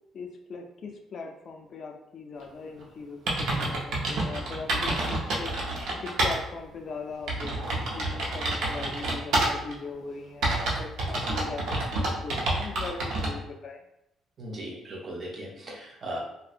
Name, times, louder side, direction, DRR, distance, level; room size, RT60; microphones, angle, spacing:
voice 1, 0.1-13.8, left 4 dB, 50° left, 3 dB, 0.3 m, -40 dB
sound 1, 2.8-2.9 3.3-6.4 6.8-6.9 7.3-9.7 10.4-13.3, right 2 dB, 80° right, 0.6 m, -28 dB
voice 2, 14.4-16.2, right 1 dB, 40° right, -2 dB, 0.6 m, -37 dB
2.5 x 2.0 x 2.4 m, 0.82 s
cardioid pair, 120°, 0 cm